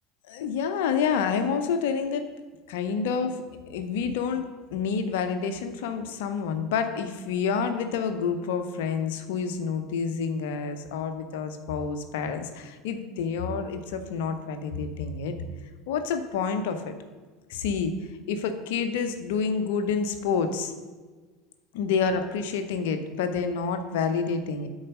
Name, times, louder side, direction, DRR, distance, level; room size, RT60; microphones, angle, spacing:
voice 1, 0.3-2.3 2.7-4.4 4.7-15.4 15.9-16.9 17.5-18.0 18.3-20.7 21.7-24.7, left 6 dB, 60° left, 8 dB, 0.7 m, -28 dB
8.6 x 4.0 x 6.3 m, 1.4 s
figure-of-eight pair, 70°, 0 cm